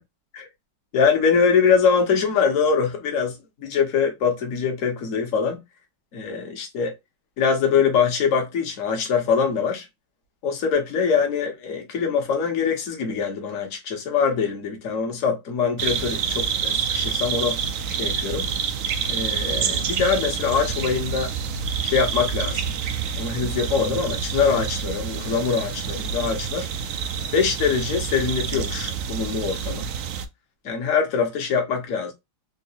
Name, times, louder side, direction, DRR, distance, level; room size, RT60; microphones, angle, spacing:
voice 1, 0.9-3.3 3.6-5.6 6.1-6.9 7.4-9.9 10.4-17.6 18.0-18.5 19.1-21.3 21.8-22.6 23.2-26.7 27.3-29.9 30.6-32.1, left 6 dB, 50° left, 1.2 m, -23 dB
sound 1, 15.8-30.3, right 7 dB, 80° right, 0.7 m, -27 dB
3.7 x 2.5 x 2.8 m
omnidirectional pair, 2.0 m